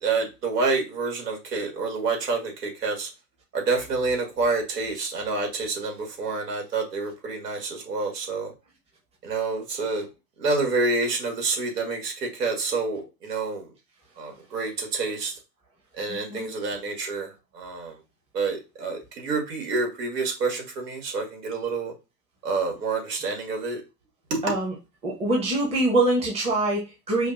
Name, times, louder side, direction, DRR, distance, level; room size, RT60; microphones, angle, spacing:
voice 1, 0.0-3.1 3.5-8.5 9.2-10.1 10.4-13.7 14.2-15.3 16.0-18.0 18.3-21.9 22.4-23.8 24.3-24.4, right 3 dB, 70° right, 2 dB, 1.8 m, -28 dB
voice 2, 16.1-16.5 24.4-24.7 25.0-27.3, right 2 dB, 15° right, -2 dB, 0.9 m, -24 dB
5.1 x 2.2 x 2.5 m, 0.26 s
hypercardioid pair, 110°, 49 cm